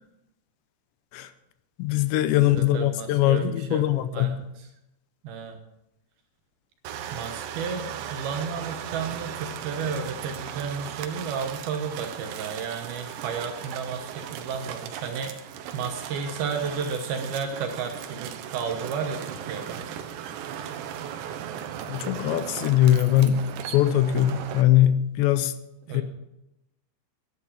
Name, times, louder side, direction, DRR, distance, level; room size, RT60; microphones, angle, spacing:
voice 1, 1.8-4.4 21.9-25.5 25.9-26.0, left 12 dB, 80° left, 12 dB, 2.9 m, -21 dB
voice 2, 2.4-3.8 4.1-4.7 5.2-5.6 7.1-19.8 25.9-26.0, right 6 dB, 70° right, 5 dB, 2.5 m, -33 dB
sound 1, 6.9-24.6, right 9 dB, 85° right, 3.3 m, -37 dB
11.5 x 9.7 x 7.3 m, 0.89 s
omnidirectional pair, 5.2 m